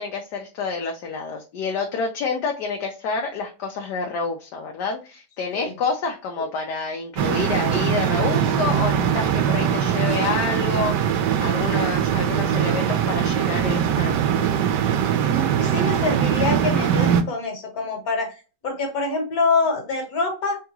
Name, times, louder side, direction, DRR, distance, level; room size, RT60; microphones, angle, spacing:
voice 1, 0.0-14.3, left 4 dB, 75° left, 2 dB, 1.3 m, -28 dB
sound 1, 7.2-17.2, right 8 dB, 75° right, 1.2 m, -21 dB
voice 2, 15.2-18.4 18.6-20.6, left 3 dB, 60° left, 3 dB, 1.7 m, -25 dB
3.6 x 3.5 x 3.0 m, 0.32 s
omnidirectional pair, 1.9 m